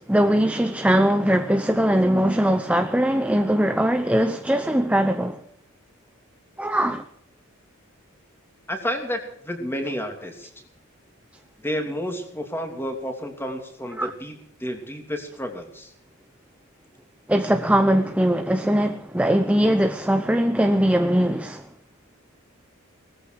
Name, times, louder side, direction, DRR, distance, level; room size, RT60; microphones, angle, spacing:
voice 1, 0.0-5.4 6.6-7.0 14.0-14.1 17.3-21.7, equal, 5° right, 0.8 m, -21 dB
voice 2, 8.7-10.5 11.6-14.3 14.6-15.9, equal, 10° left, 3.0 m, -30 dB
19.5 x 14.5 x 4.7 m
head